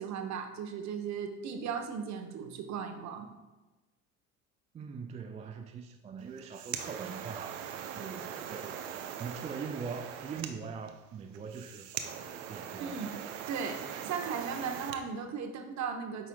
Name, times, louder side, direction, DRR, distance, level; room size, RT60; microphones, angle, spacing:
voice 1, 0.0-3.3 12.8-13.2 13.5-13.8 14.0-16.3, right 6 dB, 45° right, 5 dB, 1.0 m, -37 dB
voice 2, 4.7-8.8 9.2-13.0, right 6 dB, 20° right, 5 dB, 0.3 m, -42 dB
sound 1, 6.2-15.0, right 9 dB, 70° right, 0.7 m, -41 dB
8.7 x 5.4 x 2.3 m, 1.1 s
figure-of-eight pair, 65°, 41 cm